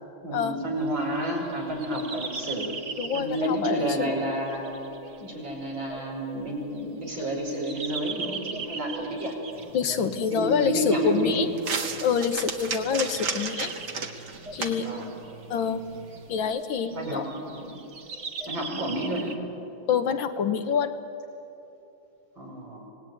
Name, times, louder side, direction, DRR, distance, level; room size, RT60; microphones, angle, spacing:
voice 1, 0.2-2.8 3.1-4.7 5.2-9.4 10.3-11.4 14.8-15.1 16.9-17.8 18.5-19.3 22.4-22.9, right 1 dB, 85° right, -1 dB, 6.1 m, -30 dB
sound 1, 0.8-19.4, right 4 dB, 40° right, 1.6 m, -41 dB
voice 2, 3.0-4.1 9.7-11.5 12.0-13.7 14.5-14.9 15.5-15.8 16.3-17.3 19.9-20.9, left 7 dB, 85° left, 8 dB, 2.0 m, -26 dB
sound 2, 9.5-16.4, right 5 dB, 60° right, 2.1 m, -36 dB
26.5 x 19.0 x 9.3 m, 3.0 s
omnidirectional pair, 2.1 m